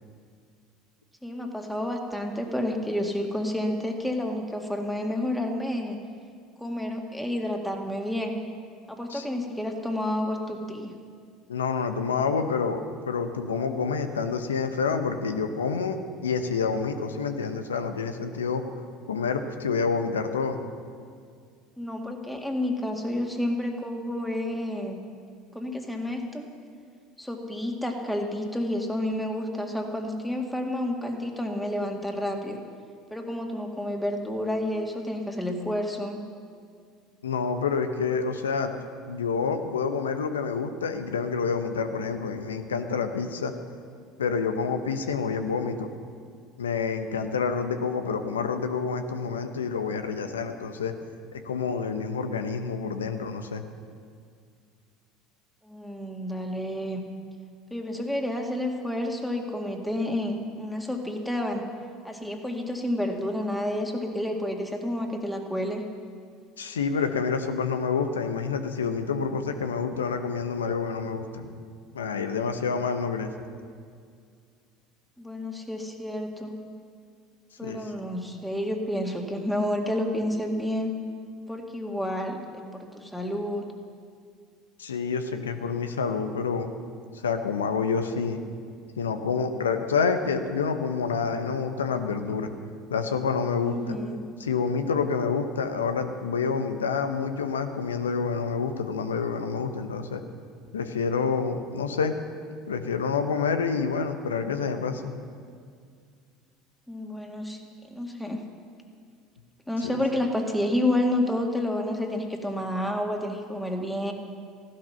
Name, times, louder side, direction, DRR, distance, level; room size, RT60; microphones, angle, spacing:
voice 1, 1.2-6.0 6.6-8.4 8.9-10.9 21.8-25.0 25.5-26.5 27.2-32.6 33.1-36.2 55.6-57.0 57.7-61.6 62.0-65.8 75.2-76.5 77.6-80.9 81.5-83.7 93.6-94.2 106.9-107.6 107.9-108.4 109.7-114.1, left 1 dB, 5° left, 2 dB, 2.1 m, -30 dB
voice 2, 11.5-18.6 19.1-20.6 37.2-38.7 39.0-43.5 44.2-45.9 46.6-50.9 51.3-53.6 66.6-71.5 71.9-73.3 77.6-77.8 84.8-86.7 87.1-88.4 89.0-92.5 92.9-94.0 94.4-100.2 100.7-102.1 102.7-105.2 109.8-109.9, left 5 dB, 85° left, 8 dB, 0.9 m, -28 dB
15.0 x 11.5 x 5.8 m, 2.2 s
hypercardioid pair, 70°, 0 cm